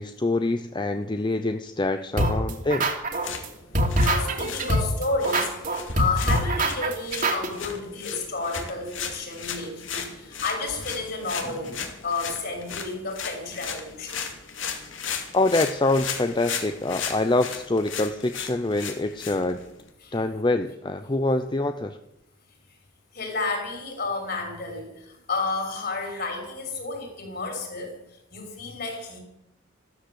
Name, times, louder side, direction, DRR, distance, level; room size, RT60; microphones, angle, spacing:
voice 1, 0.0-2.9 15.3-19.6 20.1-22.0, left 2 dB, 25° left, 8 dB, 0.6 m, -25 dB
sound 1, 2.2-3.5 3.7-7.5, right 1 dB, 40° right, 2.6 m, -24 dB
sound 2, 3.1-19.9, left 6 dB, 70° left, 2.5 m, -36 dB
voice 2, 4.0-14.2 20.0-20.2 23.1-27.9 28.3-29.2, left 3 dB, 50° left, 2 dB, 6.1 m, -31 dB
14.0 x 13.0 x 7.7 m, 0.87 s
head